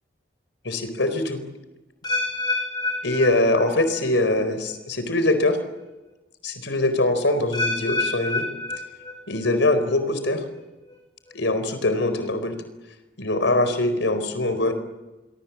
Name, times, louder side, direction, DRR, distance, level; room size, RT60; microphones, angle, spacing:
voice 1, 0.6-1.4 3.0-5.6 6.4-8.5 9.3-10.4 11.3-12.6 13.2-14.7, left 2 dB, 85° left, 10 dB, 4.3 m, -22 dB
sound 1, 2.0-4.0 4.3-4.7 5.4-5.5 7.5-9.5 9.8-10.2 10.9-11.0, left 2 dB, 25° left, 6.0 m, -28 dB
27.0 x 24.0 x 7.5 m, 1.1 s
head